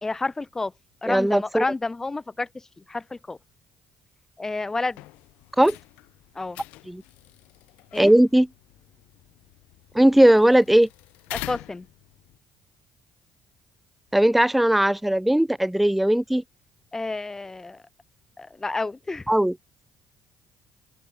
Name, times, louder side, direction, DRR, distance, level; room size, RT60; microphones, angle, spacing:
voice 1, 0.0-0.7 1.0-3.4 4.4-5.0 6.3-6.6 7.9-8.1 11.3-11.9 16.9-17.8 18.4-19.3, left 3 dB, 20° left, 0.7 m, -30 dB
voice 2, 1.1-1.6 5.6-5.8 6.9-7.0 8.0-8.5 9.9-10.9 14.1-16.4 19.3-19.5, right 1 dB, 5° right, 0.3 m, -18 dB
sound 1, 4.9-12.4, left 20 dB, 80° left, 1.4 m, -44 dB
open air
supercardioid pair, 65°, 2 cm